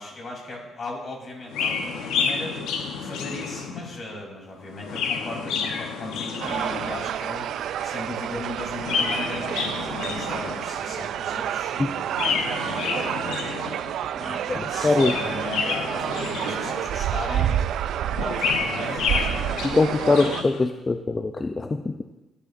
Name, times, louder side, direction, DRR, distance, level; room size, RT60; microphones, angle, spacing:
voice 1, 0.0-13.4 14.1-17.6 18.2-19.7, left 2 dB, 50° left, 0 dB, 3.4 m, -37 dB
Chirp tweet, 1.5-4.0 4.6-7.1 8.6-10.8 12.1-14.0 14.7-17.0 18.1-20.6, left 5 dB, 90° left, 0.9 m, -29 dB
sound 1, 6.4-20.4, right 10 dB, 75° right, 0.3 m, -29 dB
voice 2, 14.8-15.1 19.6-21.9, left 3 dB, 25° left, 7 dB, 0.5 m, -22 dB
15.0 x 9.9 x 2.6 m, 1.1 s
cardioid pair, 90°, 0 cm